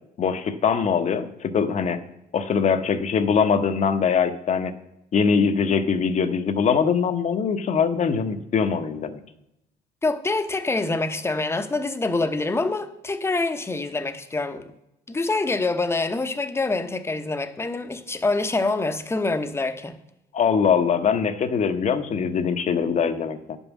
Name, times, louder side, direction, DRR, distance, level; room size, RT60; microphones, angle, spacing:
voice 1, 0.2-2.0 2.3-4.7 5.1-9.2 20.3-23.6, left 6 dB, 45° left, 0.9 m, -22 dB
voice 2, 10.0-14.6 15.1-20.0, left 3 dB, 15° left, 0.8 m, -25 dB
10.5 x 5.5 x 7.1 m
cardioid pair, 110°, 17 cm